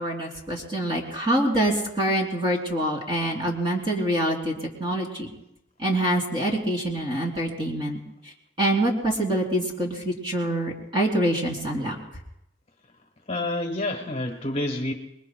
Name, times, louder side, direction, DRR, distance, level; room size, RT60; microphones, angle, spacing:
voice 1, 0.0-4.5 4.8-5.3 5.8-8.0 8.2-8.3 8.6-12.0, right 1 dB, 25° right, 0 dB, 3.1 m, -25 dB
voice 2, 13.3-14.9, left 1 dB, 30° left, 4 dB, 1.4 m, -28 dB
27.0 x 22.0 x 2.3 m, 0.83 s
head